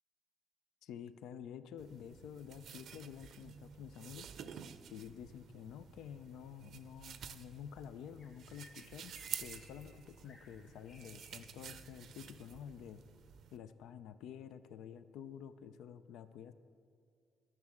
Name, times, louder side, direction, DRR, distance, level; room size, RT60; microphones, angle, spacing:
voice 1, 0.8-4.3 4.9-13.0 13.5-16.5, left 8 dB, 85° left, 12 dB, 0.5 m, -50 dB
sound 1, 1.8-13.6, right 8 dB, 70° right, 0.6 m, -51 dB
sound 2, 3.6-12.0, left 2 dB, 55° left, 2.3 m, -64 dB
11.0 x 6.1 x 7.7 m, 2.1 s
cardioid pair, 90°, 0 cm